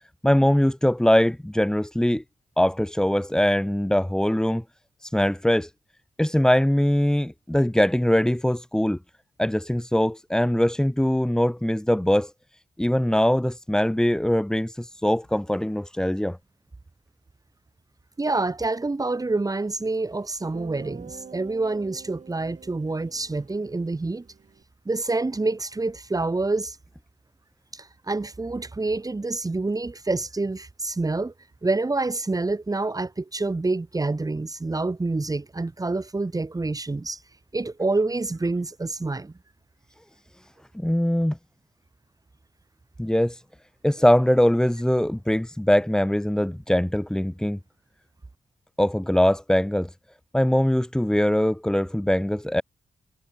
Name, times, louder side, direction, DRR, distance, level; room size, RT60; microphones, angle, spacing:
voice 1, 0.2-2.2 2.6-4.6 5.0-5.7 6.2-9.0 9.4-12.3 12.8-16.4 40.7-41.4 43.0-43.4 43.8-47.6 48.8-49.9 50.3-52.6, left 1 dB, 5° left, 1.4 m, -22 dB
voice 2, 18.2-24.2 24.9-26.8 27.7-31.3 31.6-37.2 37.5-39.3, right 3 dB, 25° right, 4.0 m, -27 dB
Guitar, 19.9-20.0 20.5-24.6, right 6 dB, 55° right, 7.5 m, -46 dB
wide cardioid pair, 110°, 15 cm